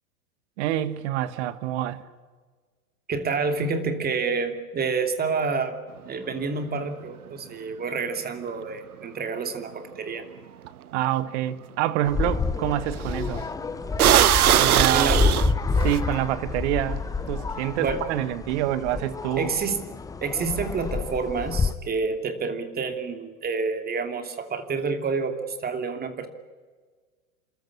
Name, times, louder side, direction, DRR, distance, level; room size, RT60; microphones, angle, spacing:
voice 1, 0.6-2.0 10.9-13.4 14.6-15.2 15.8-19.5, right 13 dB, 50° right, 1.6 m, -27 dB
voice 2, 3.1-5.8 6.1-10.3 14.7-15.3 17.8-18.0 19.4-19.8 20.2-26.3, right 4 dB, 20° right, 2.8 m, -28 dB
sound 1, 10.6-10.7 13.0-13.2 14.0-16.0, right 11 dB, 80° right, 0.8 m, -19 dB
sound 2, 12.0-21.7, left 4 dB, 10° left, 0.6 m, -28 dB
29.0 x 13.5 x 9.8 m
hypercardioid pair, 105°, 43 cm